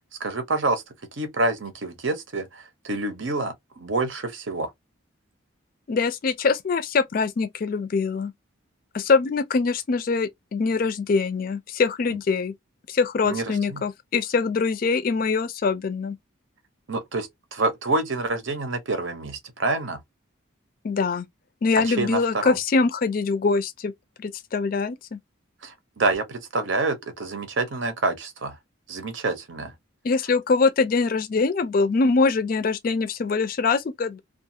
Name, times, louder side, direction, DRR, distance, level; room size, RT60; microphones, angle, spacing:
voice 1, 0.2-0.8 1.1-4.7 12.1-12.2 13.2-13.8 16.9-20.0 21.8-22.6 25.6-28.6 28.9-29.7, right 2 dB, 70° right, 0.7 m, -27 dB
voice 2, 5.9-8.3 8.9-12.5 12.9-16.2 20.8-21.3 21.6-23.9 24.2-25.2 30.0-34.2, left 4 dB, 45° left, 0.4 m, -23 dB
2.4 x 2.3 x 2.7 m
head